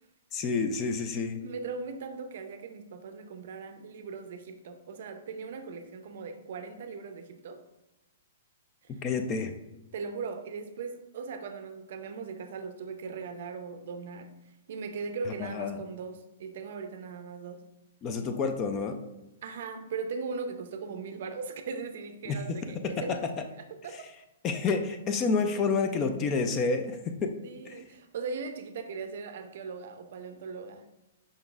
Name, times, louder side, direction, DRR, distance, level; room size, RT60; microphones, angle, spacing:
voice 1, 0.3-1.4 9.0-9.5 15.4-15.8 18.0-19.0 22.3-22.4 22.8-22.9 24.4-27.3 27.7-27.8, left 4 dB, 20° left, 7 dB, 0.3 m, -29 dB
voice 2, 1.4-7.6 8.8-9.0 9.9-14.3 14.7-17.6 19.4-23.2 23.6-24.1 27.4-30.9, right 5 dB, 55° right, 8 dB, 0.5 m, -39 dB
5.1 x 3.8 x 2.3 m, 0.96 s
hypercardioid pair, 165°, 0 cm